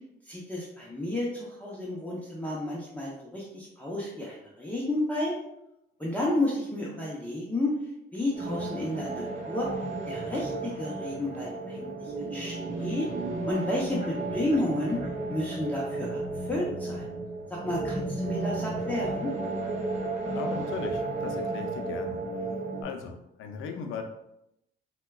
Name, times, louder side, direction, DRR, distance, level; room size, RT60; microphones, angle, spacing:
voice 1, 0.3-5.3 6.0-7.7 8.1-9.7 10.1-13.1 13.5-15.0 15.3-16.2 16.5-17.0 17.6-19.3, left 1 dB, 10° left, -5 dB, 0.7 m, -31 dB
sound 1, 8.3-22.8, right 2 dB, 35° right, 0.9 m, -33 dB
voice 2, 20.3-22.2 22.8-24.0, left 5 dB, 85° left, 4 dB, 0.5 m, -38 dB
4.4 x 2.2 x 2.2 m, 0.83 s
cardioid pair, 90°, 20 cm